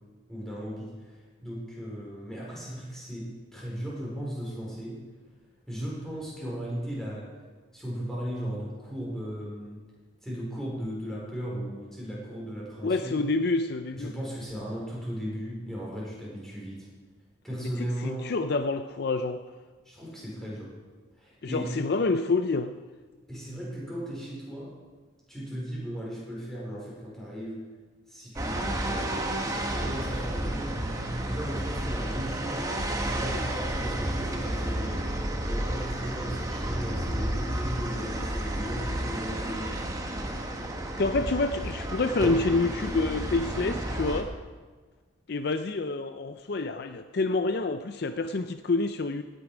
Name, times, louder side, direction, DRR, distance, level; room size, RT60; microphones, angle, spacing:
voice 1, 0.3-5.0 5.7-7.4 7.7-9.8 10.2-13.2 13.9-16.9 17.4-18.3 19.8-20.7 21.1-21.7 23.3-24.8 25.3-27.7 28.1-29.1 29.4-30.8 31.3-35.0 35.4-39.8 43.4-43.6, equal, ahead, -5 dB, 4.8 m, -37 dB
voice 2, 12.8-14.1 17.6-17.7 18.0-19.4 21.4-22.7 40.9-44.3 45.3-49.2, left 3 dB, 50° left, 9 dB, 0.5 m, -27 dB
sound 1, 28.4-44.2, right 1 dB, 15° right, 1.1 m, -31 dB
17.0 x 10.5 x 5.0 m, 1.4 s
head